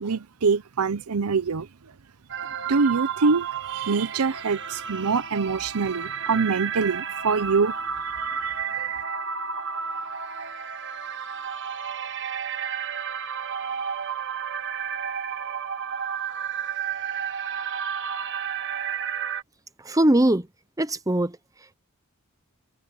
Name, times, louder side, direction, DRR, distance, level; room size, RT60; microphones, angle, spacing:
voice 1, 0.0-1.9 2.7-7.7 8.0-8.9, right 4 dB, 90° right, 0.7 m, -25 dB
sound 1, 2.3-19.4, right 7 dB, 55° right, 1.6 m, -32 dB
voice 2, 19.9-20.5 20.8-21.4, right 1 dB, 15° right, 0.9 m, -20 dB
head